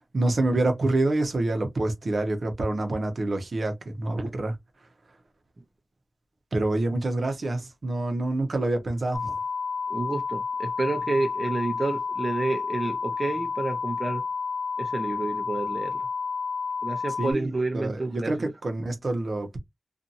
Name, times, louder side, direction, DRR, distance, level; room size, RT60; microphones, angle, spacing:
voice 1, 0.1-4.6 6.5-9.3 17.2-19.6, right 2 dB, 75° right, 0.8 m, -27 dB
sound 1, 9.1-17.3, left 5 dB, 40° left, 0.5 m, -30 dB
voice 2, 9.9-14.2 14.8-16.1 16.8-18.5, right 2 dB, 40° right, 0.6 m, -29 dB
2.7 x 2.5 x 2.5 m
wide cardioid pair, 90°, 0 cm